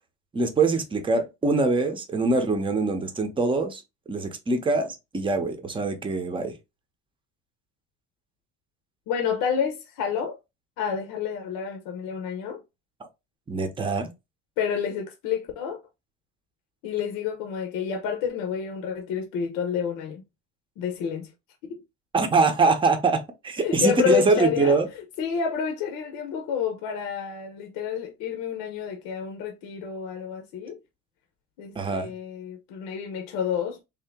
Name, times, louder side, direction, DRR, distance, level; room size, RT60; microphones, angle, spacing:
voice 1, 0.3-3.8 4.1-6.5 13.5-14.1 22.1-24.9 31.8-32.1, right 3 dB, 15° right, 0.7 m, -23 dB
voice 2, 9.1-10.4 10.8-12.6 14.6-15.8 16.8-20.2 20.8-21.3 21.6-21.8 23.6-30.8 31.6-33.8, left 7 dB, 80° left, 0.9 m, -29 dB
3.6 x 2.8 x 3.5 m
cardioid pair, 130°, 31 cm